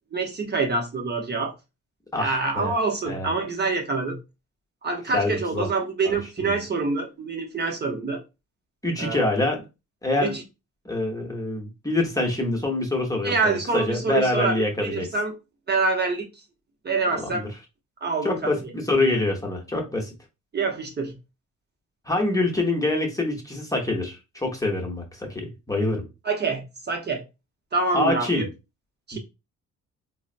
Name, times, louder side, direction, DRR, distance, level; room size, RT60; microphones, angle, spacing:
voice 1, 0.1-1.5 2.2-4.2 4.8-8.2 9.0-9.3 10.2-10.4 13.2-15.3 15.7-16.3 16.8-17.5 18.0-18.5 20.5-21.1 26.2-27.2 27.7-28.4 29.1-29.2, right 4 dB, 35° right, 0.7 m, -26 dB
voice 2, 2.1-2.7 3.1-3.3 5.1-5.7 6.0-6.5 8.8-9.6 10.0-10.3 10.8-15.1 17.1-17.5 18.2-20.1 22.0-26.0 27.9-28.5 29.1-29.2, left 2 dB, 10° left, 0.9 m, -25 dB
3.9 x 2.0 x 2.5 m
cardioid pair, 90°, 30 cm